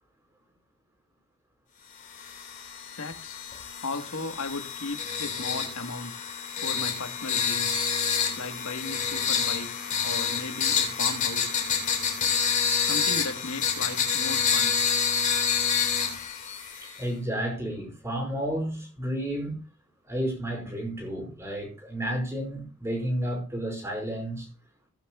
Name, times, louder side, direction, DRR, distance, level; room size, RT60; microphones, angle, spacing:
sound 1, 2.1-17.0, left 6 dB, 35° left, 3.5 m, -28 dB
voice 1, 2.9-3.4 3.8-6.1 6.6-7.8 8.4-9.7 10.0-11.6 12.8-14.7, left 3 dB, 80° left, 1.4 m, -36 dB
voice 2, 16.8-19.6 20.1-24.5, equal, 10° right, 5.2 m, -31 dB
17.5 x 11.0 x 2.3 m
head